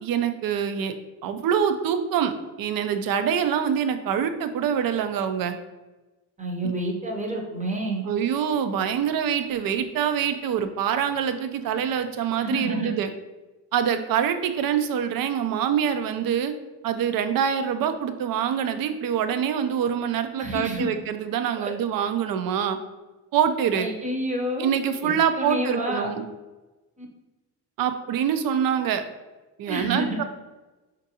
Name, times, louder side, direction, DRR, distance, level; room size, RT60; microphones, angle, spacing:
voice 1, 0.0-0.9 1.2-2.3 2.6-5.5 6.6-6.7 8.1-13.1 13.7-16.5 16.8-22.8 23.3-23.9 24.6-26.2 27.8-29.0 29.6-30.2, right 8 dB, 60° right, 9 dB, 0.5 m, -25 dB
voice 2, 6.4-8.0 12.4-12.9 20.4-20.9 21.6-21.7 23.7-24.7 25.0-26.1 27.0-27.1 29.7-30.2, right 1 dB, 20° right, 1 dB, 0.7 m, -29 dB
4.4 x 2.6 x 2.7 m, 1.1 s
cardioid pair, 110°, 40 cm